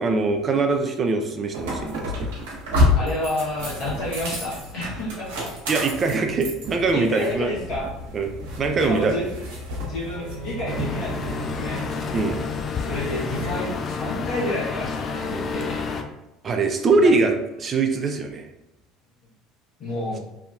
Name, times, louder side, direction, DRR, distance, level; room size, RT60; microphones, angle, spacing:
voice 1, 0.0-2.1 5.7-7.5 8.1-8.3 8.6-9.2 12.1-12.4 16.4-18.5, right 3 dB, 35° right, 5 dB, 0.4 m, -22 dB
sound 1, 1.5-13.6, left 1 dB, 75° right, 0.8 m, -29 dB
voice 2, 2.9-5.5 6.9-7.9 8.8-9.3 9.8-11.8 12.7-15.8 16.9-17.1 19.8-20.2, left 1 dB, 55° left, -6 dB, 1.3 m, -30 dB
Bowed string instrument, 10.1-13.7, right 8 dB, ahead, 1.0 m, -39 dB
sound 2, 10.7-16.0, left 5 dB, 40° left, 0.3 m, -30 dB
2.7 x 2.4 x 2.5 m, 0.93 s
hypercardioid pair, 70°, 0 cm